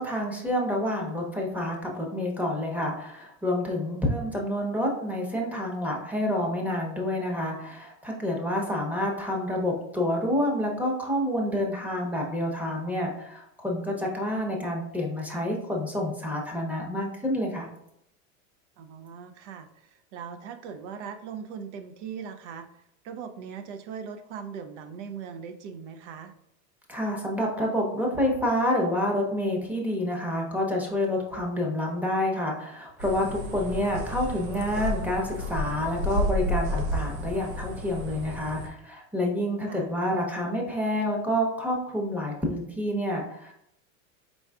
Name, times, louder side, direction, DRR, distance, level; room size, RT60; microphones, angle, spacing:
voice 1, 0.0-17.7 26.9-43.5, left 1 dB, 5° right, 0 dB, 0.8 m, -28 dB
voice 2, 18.8-22.7 23.0-26.3 39.7-39.9, right 7 dB, 60° right, 8 dB, 0.6 m, -40 dB
sound 1, 33.0-38.7, equal, 80° right, 0.9 m, -31 dB
4.7 x 3.9 x 2.4 m, 0.77 s
supercardioid pair, 125°, 40 cm